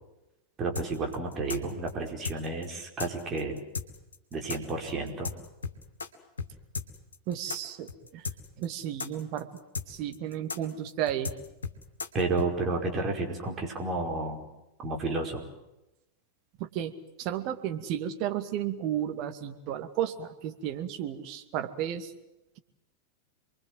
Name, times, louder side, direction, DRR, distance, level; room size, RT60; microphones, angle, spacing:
voice 1, 0.6-3.6 4.3-5.3 12.1-14.5 14.8-15.5, right 3 dB, 25° right, 2 dB, 5.1 m, -31 dB
sound 1, 0.8-6.1 6.4-6.5 6.7-12.5, left 5 dB, 70° left, 2.2 m, -36 dB
voice 2, 7.3-8.2 8.6-9.5 9.9-11.3 16.6-16.9 17.2-22.1, right 10 dB, 40° right, 7 dB, 2.3 m, -33 dB
28.5 x 22.5 x 8.0 m, 0.93 s
figure-of-eight pair, 90°, 0 cm